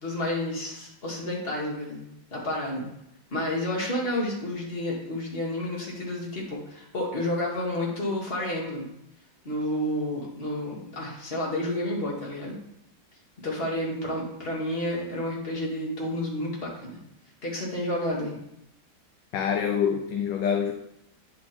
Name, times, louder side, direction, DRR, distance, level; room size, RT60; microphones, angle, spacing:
voice 1, 0.0-2.9 3.3-8.9 9.4-12.6 13.4-17.0 17.4-18.4, left 1 dB, 30° left, 1.9 m, -30 dB
voice 2, 19.3-20.7, left 7 dB, 75° left, 1.1 m, -26 dB
9.5 x 3.8 x 4.3 m
omnidirectional pair, 2.2 m